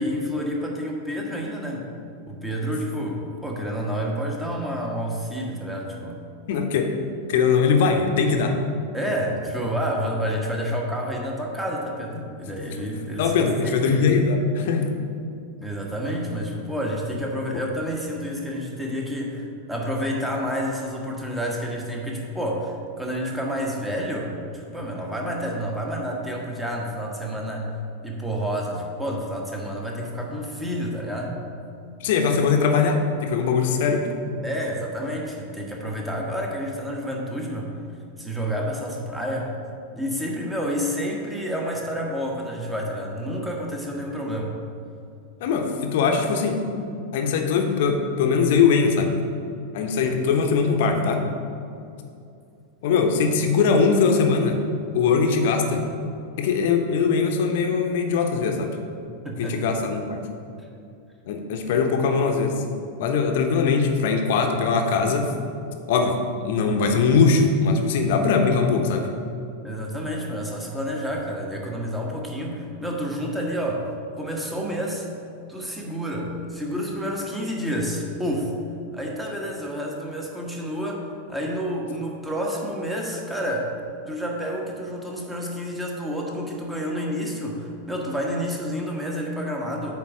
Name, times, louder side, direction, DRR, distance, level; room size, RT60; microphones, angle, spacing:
voice 1, 0.0-1.8 2.3-6.2 8.9-13.8 15.6-27.6 28.0-31.4 34.4-37.7 38.2-39.5 39.9-44.5 59.2-59.6 69.6-73.9 74.2-75.1 75.5-78.5 78.9-81.0 81.3-83.8 84.1-89.9, equal, 5° right, -1 dB, 1.3 m, -29 dB
voice 2, 6.5-6.9 7.3-8.6 13.2-14.8 32.0-34.1 45.4-46.6 47.1-49.1 49.7-51.2 52.8-54.6 54.9-55.8 56.4-58.8 59.4-60.2 61.3-62.6 63.0-65.3 65.9-66.2 66.4-69.1, left 5 dB, 55° left, 4 dB, 0.9 m, -21 dB
8.3 x 4.0 x 6.0 m, 2.6 s
figure-of-eight pair, 90°, 0 cm